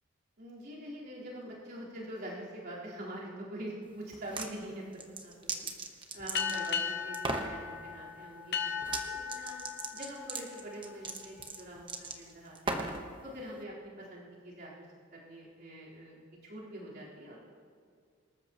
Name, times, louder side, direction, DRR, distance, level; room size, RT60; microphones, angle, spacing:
voice 1, 0.4-5.7 6.1-12.9 13.2-14.9 15.1-17.4, right 1 dB, 55° right, -7 dB, 4.1 m, -45 dB
sound 1, 4.1-4.5 4.9-6.8 7.1-7.5 8.8-9.0 9.3-13.0, right 3 dB, 25° right, 1.1 m, -37 dB
sound 2, 6.3-11.4, left 6 dB, 55° left, 0.9 m, -37 dB
25.0 x 13.5 x 3.0 m, 2.1 s
head